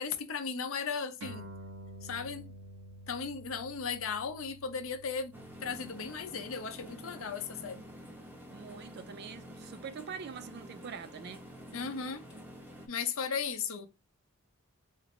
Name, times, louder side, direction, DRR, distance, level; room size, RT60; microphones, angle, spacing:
voice 1, 0.0-1.5 2.0-2.4 3.1-5.3 5.6-7.8 11.7-12.2 12.9-13.9, left 5 dB, 65° left, 0.7 m, -36 dB
sound 1, 1.2-8.0, right 1 dB, 90° right, 1.4 m, -50 dB
sound 2, 5.3-12.9, equal, 10° right, 0.8 m, -49 dB
voice 2, 8.5-11.5, right 6 dB, 45° right, 0.3 m, -44 dB
4.0 x 2.6 x 3.1 m
head